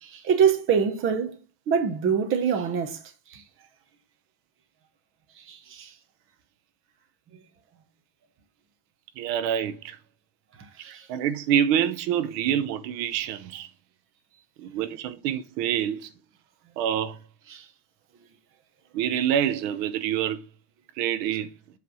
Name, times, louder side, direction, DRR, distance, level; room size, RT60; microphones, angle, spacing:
voice 1, 0.0-1.4 1.7-3.4 5.4-5.9 7.3-7.4 10.6-11.1 17.5-17.7, right 7 dB, 25° right, 0.9 m, -25 dB
voice 2, 9.2-10.0 10.9-13.7 14.6-16.1 16.8-17.2 18.9-20.4 21.0-21.5, right 9 dB, 75° right, 0.9 m, -26 dB
7.8 x 3.3 x 5.5 m
cardioid pair, 170°, 50 cm